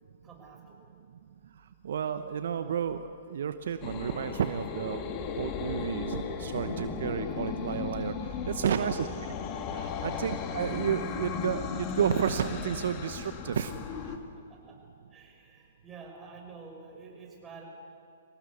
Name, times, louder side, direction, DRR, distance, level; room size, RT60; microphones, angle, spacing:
voice 1, 0.2-0.9 8.7-9.2 10.0-10.3 14.0-14.1 14.5-14.8 15.1-17.6, right 4 dB, 20° right, 1 dB, 6.2 m, -48 dB
voice 2, 1.8-5.0 5.3-8.1 8.5-9.1 9.7-13.7, right 8 dB, 65° right, 10 dB, 1.0 m, -31 dB
sound 1, 3.8-14.2, left 6 dB, 35° left, 2.3 m, -36 dB
25.0 x 18.5 x 8.5 m, 2.4 s
hypercardioid pair, 120°, 0 cm